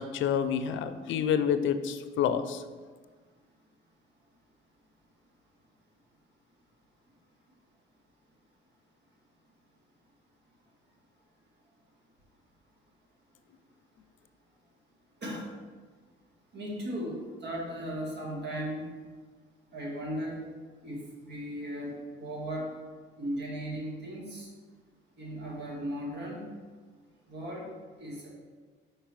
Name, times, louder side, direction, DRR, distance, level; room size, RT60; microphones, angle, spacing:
voice 1, 0.0-2.6, left 8 dB, 75° left, 10 dB, 0.5 m, -28 dB
voice 2, 16.5-18.9 19.7-20.4 20.8-22.7 23.2-24.5 25.2-26.4 27.3-27.7 28.0-28.3, equal, 60° right, -2 dB, 1.9 m, -36 dB
5.6 x 4.5 x 4.7 m, 1.4 s
cardioid pair, 90°, 20 cm